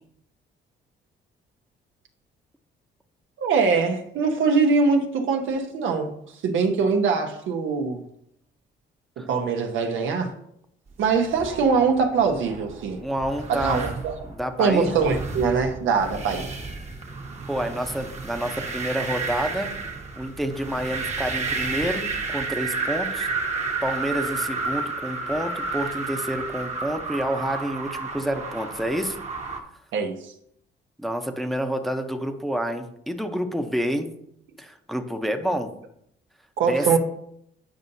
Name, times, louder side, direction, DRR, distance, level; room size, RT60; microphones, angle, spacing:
voice 1, 3.4-6.1 6.4-8.0 9.2-10.3 11.0-13.0 13.5-14.1 14.6-16.5 29.9-30.3 36.6-37.0, right 5 dB, 80° right, 1.0 m, -22 dB
sound 1, 11.1-29.6, right 4 dB, 35° right, 1.2 m, -32 dB
voice 2, 13.0-13.8 14.3-14.9 17.5-19.7 20.2-23.3 23.8-29.2 31.0-34.1 34.6-35.7 36.7-37.0, equal, ahead, 0.8 m, -28 dB
9.1 x 5.4 x 2.7 m
cardioid pair, 90°, 20 cm